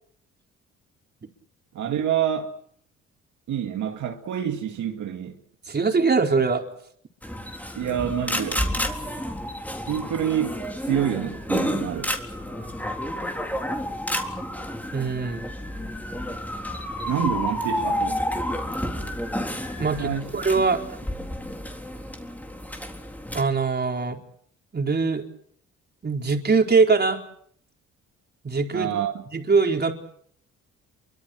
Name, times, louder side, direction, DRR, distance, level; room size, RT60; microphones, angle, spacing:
voice 1, 1.7-2.5 3.5-5.4 7.8-8.6 9.9-12.1 17.1-18.2 20.0-20.3 20.6-20.7 28.7-29.2, right 9 dB, 75° right, 2.2 m, -27 dB
voice 2, 5.7-6.6 9.0-9.1 14.9-15.5 18.7-19.1 19.8-20.8 23.3-24.2 24.7-25.2 26.0-27.2 28.4-28.9 29.3-29.9, right 4 dB, 35° right, 4.4 m, -22 dB
sound 1, 7.2-23.4, left 1 dB, 5° left, 3.8 m, -30 dB
29.5 x 24.0 x 6.3 m
cardioid pair, 90°, 30 cm